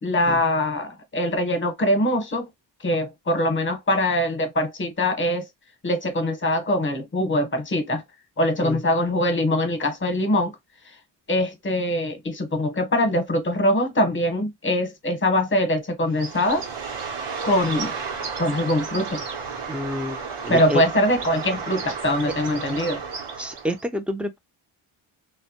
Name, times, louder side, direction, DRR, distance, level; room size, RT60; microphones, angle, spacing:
voice 1, 0.0-2.5 2.8-5.4 5.8-8.0 8.4-10.5 11.3-16.7 17.4-17.9 18.4-19.2 20.5-23.0, left 1 dB, 25° left, 0.8 m, -23 dB
Bird, 16.1-23.8, right 5 dB, 80° right, 0.9 m, -32 dB
voice 2, 19.7-20.8 23.4-24.4, equal, 5° right, 0.3 m, -28 dB
2.1 x 2.1 x 2.7 m
cardioid pair, 80°, 48 cm